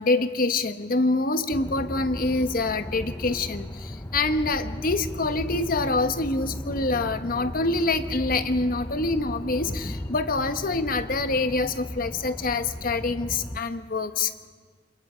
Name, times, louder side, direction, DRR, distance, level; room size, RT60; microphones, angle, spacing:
voice 1, 0.0-14.3, left 3 dB, 50° left, 9 dB, 1.2 m, -26 dB
sound 1, 1.5-13.6, left 1 dB, 15° left, 0.7 m, -36 dB
28.0 x 25.5 x 5.1 m, 1.5 s
head